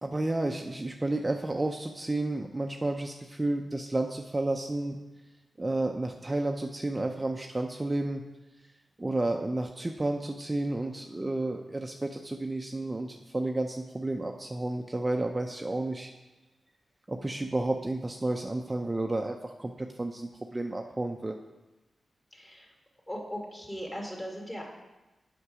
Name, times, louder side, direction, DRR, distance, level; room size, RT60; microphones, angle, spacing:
voice 1, 0.0-5.0 5.6-8.2 9.0-16.1 17.1-21.4, right 2 dB, 20° right, 3 dB, 0.5 m, -31 dB
voice 2, 22.3-22.7 23.1-24.7, equal, 20° left, -1 dB, 2.3 m, -38 dB
8.2 x 5.9 x 4.8 m, 1.1 s
cardioid pair, 75°, 0 cm